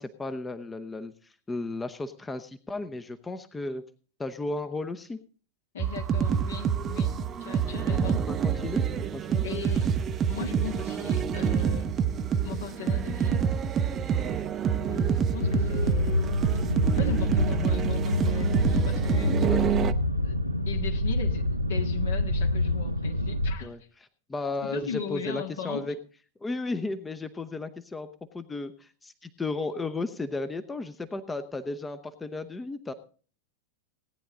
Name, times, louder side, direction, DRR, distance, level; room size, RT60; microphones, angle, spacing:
voice 1, 0.0-3.8 4.2-5.2 7.9-8.9 9.1-9.4 19.4-19.7 23.6-23.8 24.3-26.0 26.4-28.1 28.3-32.9, left 2 dB, 10° left, 11 dB, 0.8 m, -34 dB
voice 2, 5.7-8.2 9.4-10.0 10.3-11.9 12.4-13.5 14.8-16.4 16.8-19.4 20.2-20.3 20.7-23.7 24.6-25.8, left 8 dB, 60° left, 5 dB, 1.7 m, -38 dB
sound 1, 5.8-19.9, right 7 dB, 25° right, 0.7 m, -27 dB
sound 2, 15.4-23.6, left 1 dB, 85° right, 0.7 m, -27 dB
18.0 x 9.9 x 3.8 m, 0.40 s
figure-of-eight pair, 90°, 0 cm